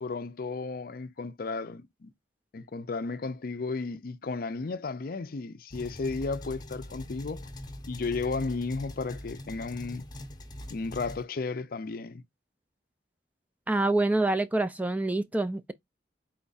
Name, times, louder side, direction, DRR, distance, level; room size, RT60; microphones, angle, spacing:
voice 1, 0.0-2.1 2.5-7.5 7.9-10.0 10.7-12.2, left 4 dB, 55° left, 0.5 m, -34 dB
sound 1, 5.7-11.2, left 1 dB, 25° left, 0.8 m, -42 dB
voice 2, 13.7-15.7, right 2 dB, 10° right, 0.3 m, -26 dB
4.4 x 2.2 x 3.9 m
head